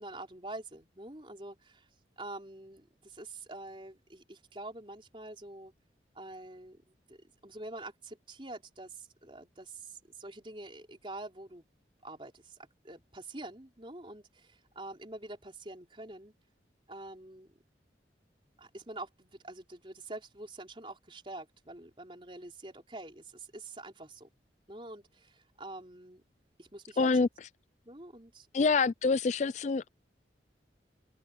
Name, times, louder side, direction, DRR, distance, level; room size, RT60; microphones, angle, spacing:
voice 1, 0.0-1.9 2.2-5.7 6.1-11.6 12.0-16.3 16.9-17.6 18.6-24.3 24.7-26.2 26.6-27.3 27.9-28.7, right 2 dB, 30° right, 4.2 m, -46 dB
voice 2, 27.0-27.3 28.5-29.9, left 4 dB, 40° left, 0.3 m, -26 dB
head